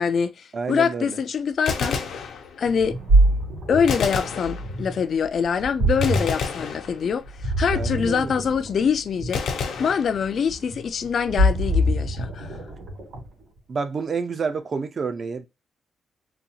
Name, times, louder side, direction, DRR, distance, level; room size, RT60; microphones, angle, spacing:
voice 1, 0.0-2.0 2.6-3.0 3.7-9.4 9.8-12.6, left 6 dB, 50° left, 0.3 m, -24 dB
voice 2, 0.5-1.2 7.7-8.4 13.7-15.5, right 5 dB, 35° right, 0.4 m, -29 dB
Gunshot gunfire, 1.5-2.9 3.9-5.1 6.0-7.4 9.3-10.7, left 5 dB, 80° left, 0.6 m, -30 dB
Ocean, 2.7-13.4, right 1 dB, 70° right, 2.3 m, -25 dB
3.9 x 2.3 x 2.8 m
cardioid pair, 150°, 0 cm